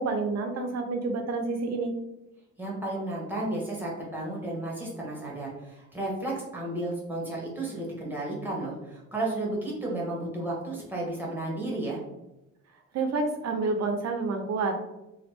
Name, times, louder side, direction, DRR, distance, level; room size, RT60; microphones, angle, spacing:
voice 1, 0.0-1.9 12.9-14.7, right 3 dB, 60° right, 5 dB, 0.5 m, -28 dB
voice 2, 2.6-12.0, right 2 dB, 5° right, -4 dB, 1.2 m, -33 dB
3.0 x 2.2 x 3.3 m, 0.95 s
cardioid pair, 90°, 30 cm